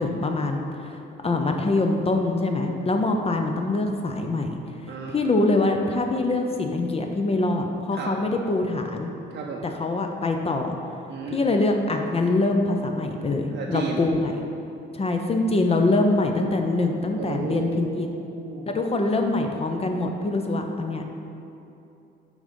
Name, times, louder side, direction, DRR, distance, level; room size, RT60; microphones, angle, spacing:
voice 1, 0.0-4.5 4.9-9.1 9.6-10.8 11.3-14.3 14.9-18.1 18.7-21.1, left 2 dB, 30° left, 4 dB, 0.5 m, -24 dB
voice 2, 4.9-5.2 7.9-8.1 9.1-9.7 11.1-11.4 13.5-14.0 17.2-18.7, right 5 dB, 65° right, -2 dB, 0.6 m, -34 dB
6.2 x 3.8 x 5.2 m, 2.8 s
cardioid pair, 90°, 20 cm